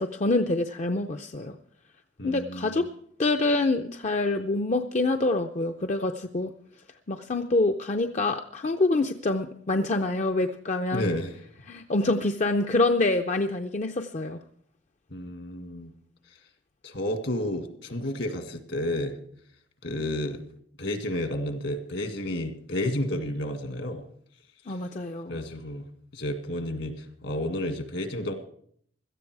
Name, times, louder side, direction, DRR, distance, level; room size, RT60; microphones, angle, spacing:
voice 1, 0.0-1.6 2.2-2.8 3.2-6.5 7.1-11.1 11.7-14.4 24.7-25.4, left 2 dB, 35° left, 6 dB, 0.5 m, -26 dB
voice 2, 2.2-2.8 10.9-11.3 15.1-15.9 16.8-19.2 19.8-20.4 20.8-24.0 25.3-25.9 26.1-28.3, left 1 dB, 65° left, 7 dB, 1.9 m, -31 dB
17.0 x 13.0 x 4.7 m, 0.62 s
head